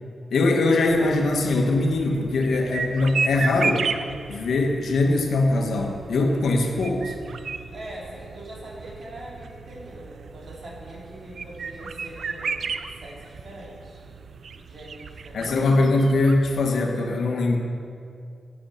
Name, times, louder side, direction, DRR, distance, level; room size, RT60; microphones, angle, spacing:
voice 1, 0.3-3.9 4.3-7.1 15.3-17.6, left 2 dB, 85° left, 2 dB, 1.6 m, -22 dB
sound 1, 0.9-16.7, right 5 dB, 70° right, 0.5 m, -34 dB
voice 2, 7.7-12.7 13.0-14.0 14.6-15.8, right 1 dB, 55° right, -4 dB, 3.9 m, -42 dB
11.5 x 9.9 x 6.7 m, 2.4 s
cardioid pair, 90°, 0 cm